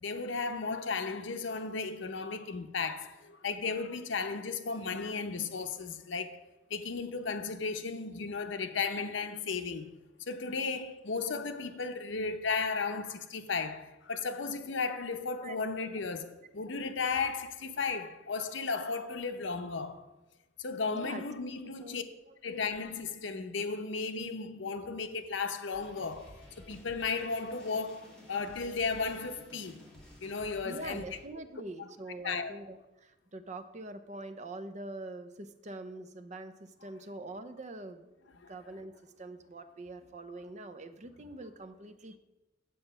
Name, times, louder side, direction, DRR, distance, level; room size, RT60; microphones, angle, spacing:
voice 1, 0.0-6.4 6.7-9.9 10.2-20.1 20.6-22.0 22.4-29.9 30.2-31.0 32.2-32.5, left 4 dB, 75° left, 0.7 m, -35 dB
voice 2, 20.9-21.2 21.6-22.7 30.6-42.2, right 2 dB, 40° right, 0.6 m, -45 dB
sound 1, 25.7-31.2, equal, 5° left, 2.6 m, -53 dB
7.9 x 7.6 x 5.5 m
head